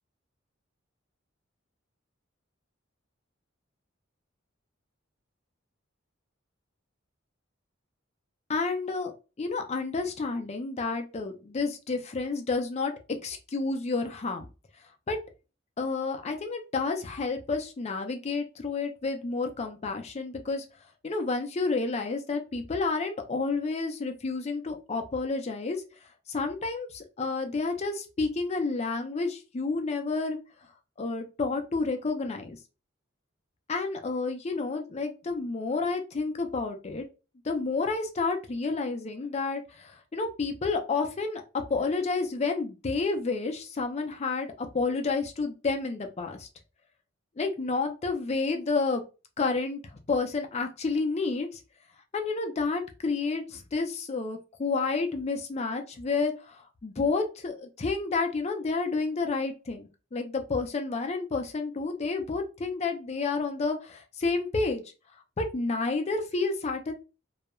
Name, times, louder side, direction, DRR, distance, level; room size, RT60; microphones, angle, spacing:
voice 1, 8.5-12.9 13.2-14.5 15.1-15.2 15.8-20.6 21.0-25.8 26.3-30.4 31.0-32.6 33.7-37.1 37.4-41.4 41.7-46.5 47.4-49.0 49.4-49.8 50.1-51.5 52.1-64.8 65.4-66.9, left 3 dB, 30° left, 5 dB, 0.4 m, -30 dB
2.3 x 2.1 x 2.9 m, 0.30 s
head